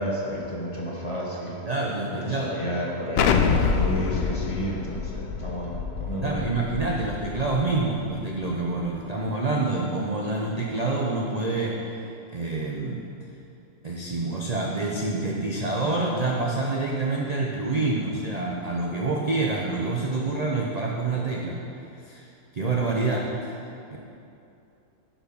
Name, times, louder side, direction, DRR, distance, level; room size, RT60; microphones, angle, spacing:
voice 1, 0.0-1.5 2.1-6.4, equal, 25° left, -4 dB, 1.2 m, -31 dB
voice 2, 1.7-2.6 6.2-12.0 12.3-13.0 13.8-21.6 22.1-22.3 22.5-23.5 23.9-24.0, right 3 dB, 40° right, -2 dB, 0.6 m, -27 dB
Explosion, 3.2-7.9, left 6 dB, 70° left, 0.6 m, -26 dB
11.0 x 4.9 x 5.2 m, 2.7 s
omnidirectional pair, 1.6 m